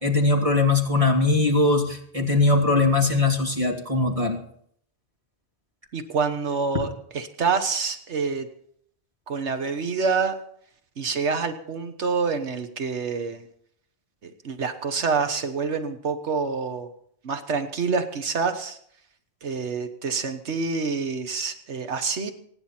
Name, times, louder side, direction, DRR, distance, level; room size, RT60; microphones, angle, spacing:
voice 1, 0.0-4.4, left 3 dB, 30° right, 1 dB, 2.5 m, -21 dB
voice 2, 5.9-8.5 9.3-10.3 11.0-13.4 14.2-16.9 17.2-18.8 19.4-22.3, right 5 dB, 85° right, 8 dB, 1.5 m, -27 dB
24.5 x 10.5 x 4.4 m, 0.66 s
omnidirectional pair, 1.1 m